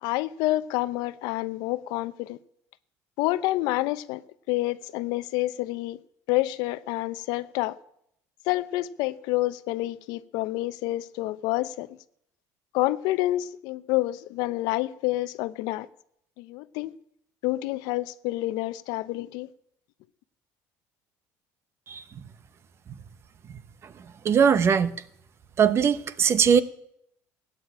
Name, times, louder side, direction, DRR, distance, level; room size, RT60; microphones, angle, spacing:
voice 1, 0.0-2.4 3.2-4.2 4.5-6.0 6.3-7.8 8.5-12.0 12.7-15.9 16.4-16.9 17.4-19.5, left 17 dB, 80° left, 0.7 m, -28 dB
voice 2, 24.2-24.9 25.6-26.6, right 7 dB, 40° right, 0.9 m, -20 dB
16.0 x 9.2 x 8.5 m
cardioid pair, 125°, 7 cm